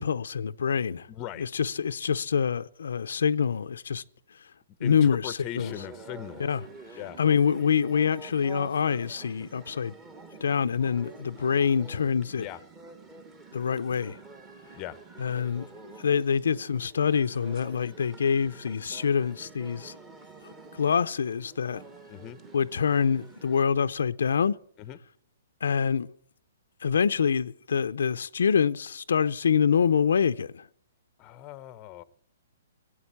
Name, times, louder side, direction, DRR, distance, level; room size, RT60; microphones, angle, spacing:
voice 1, 0.0-1.1 1.4-4.0 4.8-5.7 6.4-6.6 7.2-9.9 10.4-12.5 13.5-14.2 15.2-15.7 16.0-20.0 20.4-21.8 22.5-24.6 25.6-26.1 26.8-30.7, left 7 dB, 85° left, 0.6 m, -26 dB
voice 2, 1.1-1.5 4.8-6.5 6.9-7.2 12.4-12.6 14.7-15.0 22.1-22.4 24.8-25.0 31.2-32.0, left 12 dB, 20° left, 0.7 m, -39 dB
sound 1, 5.6-23.6, right 3 dB, 15° right, 1.2 m, -48 dB
17.5 x 8.8 x 8.6 m
hypercardioid pair, 165°, 0 cm